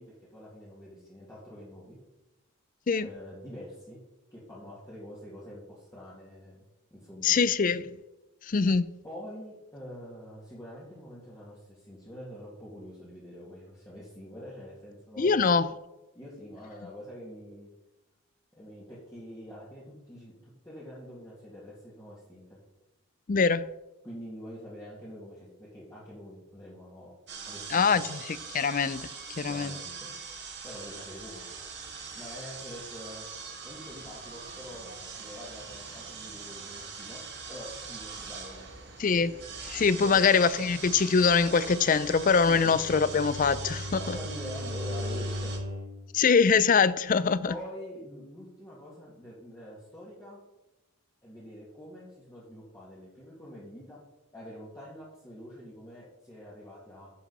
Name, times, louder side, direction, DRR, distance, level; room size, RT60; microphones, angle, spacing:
voice 1, 0.0-2.0 3.0-4.0 4.3-6.6 6.9-7.4 9.0-15.5 16.1-17.7 18.5-22.6 24.0-27.1 27.4-28.1 29.5-30.1 30.6-31.5 32.1-33.3 33.6-37.2 37.5-38.9 39.9-40.2 42.5-42.8 43.9-45.6 47.4-50.4 51.2-54.0 54.3-57.1, equal, 15° left, 2.2 m, -45 dB
voice 2, 7.2-7.9 8.4-9.0 15.2-15.7 23.3-23.6 27.7-29.1 29.4-29.7 39.0-39.3 39.6-44.2 46.1-47.5, left 5 dB, 35° left, 0.4 m, -24 dB
sound 1, 27.3-45.6, right 5 dB, 50° right, 2.0 m, -42 dB
Bowed string instrument, 42.4-46.0, left 1 dB, 90° right, 2.1 m, -37 dB
10.5 x 7.4 x 4.1 m
head